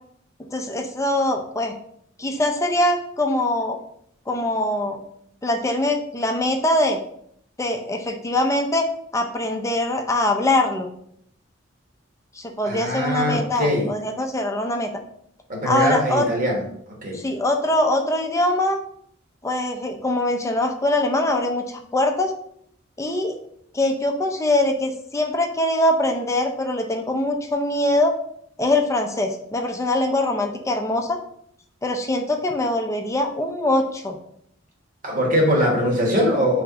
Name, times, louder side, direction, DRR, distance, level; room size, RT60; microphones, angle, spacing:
voice 1, 0.5-1.7 2.2-3.8 4.3-5.0 5.4-7.0 7.6-8.9 9.1-10.9 12.4-14.9 15.7-16.2 17.1-18.8 19.4-22.3 23.0-23.3 23.7-28.1 28.6-31.2 31.8-34.2, left 1 dB, 15° left, 3 dB, 0.5 m, -22 dB
voice 2, 12.6-13.9 15.5-16.6 17.0-17.2 35.0-36.6, equal, 45° right, -1 dB, 1.3 m, -21 dB
3.5 x 3.1 x 4.7 m, 0.69 s
head